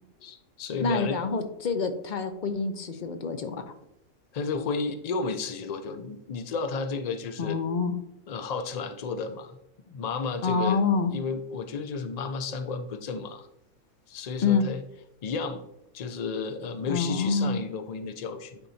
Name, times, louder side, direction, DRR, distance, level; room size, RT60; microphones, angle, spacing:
voice 1, 0.2-1.2 4.3-7.6 8.3-9.6 9.9-10.8 11.1-13.5 14.1-14.8 15.2-15.6 15.9-18.6, left 4 dB, 75° left, 8 dB, 0.3 m, -32 dB
voice 2, 0.8-3.7 7.4-7.9 10.4-11.1 14.4-14.6 16.9-17.6, left 4 dB, 45° left, 7 dB, 0.7 m, -26 dB
9.7 x 4.5 x 2.7 m, 0.81 s
omnidirectional pair, 1.3 m